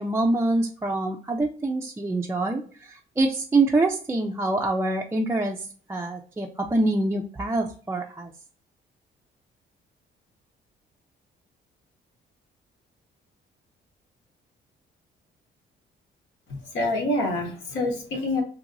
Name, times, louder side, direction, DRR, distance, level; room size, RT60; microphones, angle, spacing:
voice 1, 0.0-8.3, right 2 dB, 15° right, 0 dB, 0.4 m, -25 dB
voice 2, 16.5-18.4, left 1 dB, 70° left, 1 dB, 0.9 m, -27 dB
2.8 x 2.7 x 2.6 m, 0.44 s
cardioid pair, 90°, 20 cm